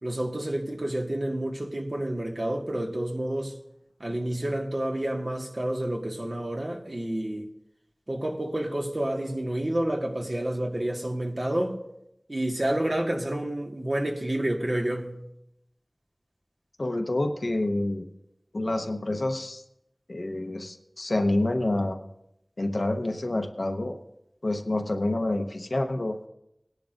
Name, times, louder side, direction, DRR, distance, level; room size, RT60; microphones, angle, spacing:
voice 1, 0.0-3.5 4.0-7.5 8.1-11.8 12.3-15.2, right 1 dB, 55° right, 1.8 m, -29 dB
voice 2, 16.8-18.1 18.5-19.6 20.1-22.0 22.6-24.0 24.4-26.2, left 1 dB, 75° left, 1.0 m, -28 dB
20.0 x 10.5 x 2.6 m
wide cardioid pair, 50°, 0 cm